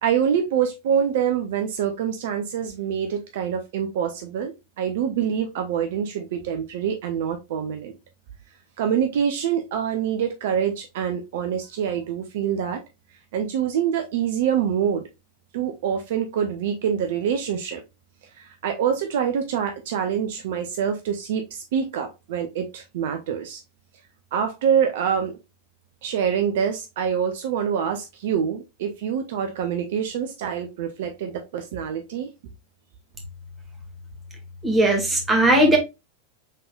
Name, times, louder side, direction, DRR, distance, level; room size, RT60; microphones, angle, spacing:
voice 1, 0.0-8.0 8.8-12.8 13.3-15.0 15.5-17.8 18.4-23.6 24.3-25.4 26.0-32.3, right 8 dB, 55° right, 0.6 m, -25 dB
voice 2, 34.6-35.8, right 1 dB, 15° right, 1.7 m, -18 dB
5.4 x 3.8 x 2.3 m
figure-of-eight pair, 90°, 0 cm